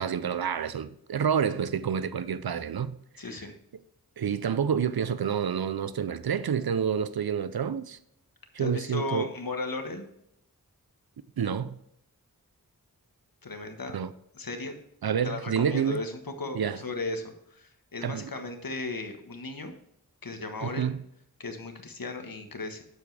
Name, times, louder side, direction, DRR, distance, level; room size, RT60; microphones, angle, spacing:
voice 1, 0.0-3.0 4.2-8.0 8.5-9.3 11.4-11.8 13.9-14.1 15.0-16.0 16.5-16.8 18.0-18.3 20.6-21.0, right 7 dB, 75° right, 0.6 m, -28 dB
voice 2, 3.2-3.5 8.6-10.1 13.4-14.0 14.3-14.7 15.2-19.7 20.2-20.8 21.4-22.8, left 3 dB, 65° left, 1.4 m, -36 dB
8.6 x 7.3 x 3.3 m
wide cardioid pair, 50°, 37 cm